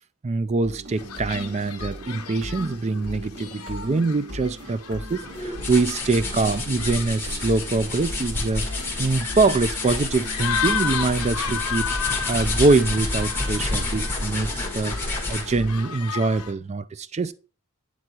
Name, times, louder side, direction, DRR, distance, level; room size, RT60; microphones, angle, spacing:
voice 1, 0.2-8.7 9.0-15.0 15.3-17.3, right 3 dB, 30° right, 0.4 m, -24 dB
sound 1, 0.6-16.0, equal, 55° right, 2.3 m, -39 dB
sound 2, 1.0-16.5, left 7 dB, 80° left, 0.9 m, -34 dB
sound 3, 5.2-15.6, left 2 dB, 10° left, 1.5 m, -29 dB
9.1 x 3.6 x 4.4 m
head